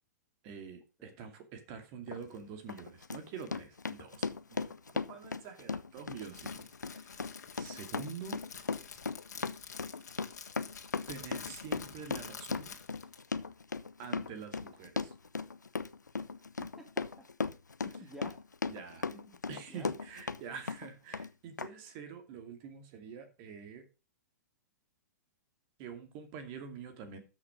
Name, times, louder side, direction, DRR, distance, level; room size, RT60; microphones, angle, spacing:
voice 1, 0.4-4.7 5.1-8.4 11.1-12.8 14.0-15.1 17.9-18.0 18.7-19.1 19.5-23.8 25.8-27.2, right 6 dB, 40° right, 7 dB, 2.4 m, -46 dB
Run, 2.1-2.2 2.7-20.4 20.7-21.3 21.6-21.7, left 4 dB, 90° left, 0.8 m, -37 dB
Crackle, 6.1-13.3, left 7 dB, 70° left, 2.0 m, -49 dB
voice 2, 16.6-17.3 17.8-18.4 19.0-19.4 19.7-20.0, left 1 dB, 5° right, 4 dB, 2.1 m, -52 dB
13.0 x 6.4 x 5.1 m, 0.30 s
hypercardioid pair, 115°, 9 cm